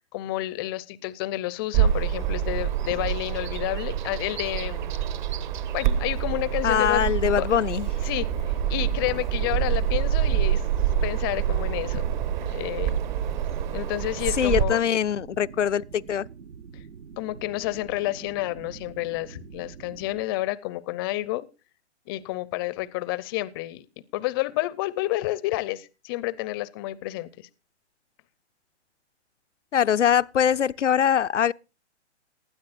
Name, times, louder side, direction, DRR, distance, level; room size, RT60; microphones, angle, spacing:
voice 1, 0.1-4.9 5.7-7.1 7.4-7.5 8.0-8.3 8.7-10.6 11.0-12.0 12.5-13.0 13.7-14.9 17.2-21.5 22.1-23.9 24.1-27.5, left 18 dB, 20° left, 0.5 m, -30 dB
Bird vocalization bird call bird song, 1.7-14.6, right 10 dB, 40° right, 1.3 m, -26 dB
voice 2, 6.6-7.9 14.4-16.3 29.7-31.5, left 9 dB, 90° left, 0.6 m, -22 dB
sound 1, 6.7-20.2, right 6 dB, 70° right, 1.1 m, -45 dB
18.5 x 12.5 x 2.5 m
hypercardioid pair, 135°, 35 cm